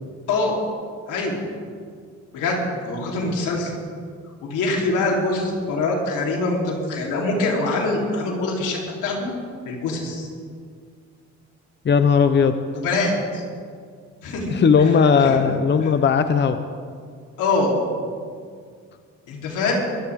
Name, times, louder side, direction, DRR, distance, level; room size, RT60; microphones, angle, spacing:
voice 1, 1.1-1.4 2.3-3.7 4.4-9.3 9.6-10.3 12.7-13.4 14.2-14.6 15.2-15.4 17.4-17.7 19.3-19.7, left 2 dB, 90° left, -2 dB, 3.7 m, -24 dB
voice 2, 11.8-12.6 14.5-16.6, left 6 dB, 35° left, 9 dB, 0.8 m, -17 dB
23.0 x 14.0 x 3.7 m, 2.1 s
cardioid pair, 90°, 30 cm